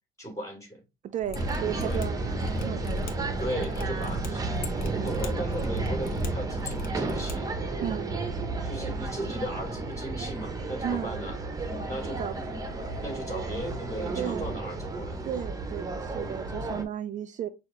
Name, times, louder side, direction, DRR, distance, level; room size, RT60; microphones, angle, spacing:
voice 1, 0.2-0.8 1.7-2.1 3.4-4.4 4.8-7.5 8.6-11.4 11.9-12.6 13.0-15.2, right 1 dB, 20° left, 2.8 m, -37 dB
voice 2, 1.1-3.1 5.0-5.1 7.8-8.1 10.8-11.2 12.0-12.4 14.2-14.5 15.2-17.5, right 10 dB, 45° right, 0.4 m, -34 dB
Mechanisms, 1.2-7.3 7.6-7.7, left 1 dB, 60° left, 1.0 m, -37 dB
sound 1, 1.3-16.8, right 3 dB, 20° right, 0.8 m, -32 dB
6.3 x 2.5 x 3.1 m
cardioid pair, 110°, 17 cm